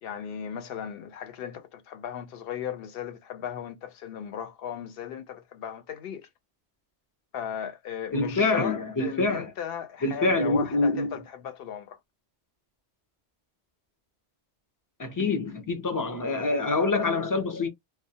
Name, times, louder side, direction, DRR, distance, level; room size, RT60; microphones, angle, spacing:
voice 1, 0.0-6.3 7.3-12.0, left 8 dB, 65° left, 0.7 m, -36 dB
voice 2, 8.1-9.5 10.0-11.1 15.0-17.7, left 3 dB, 30° left, 0.3 m, -26 dB
2.2 x 2.0 x 2.7 m
omnidirectional pair, 1.1 m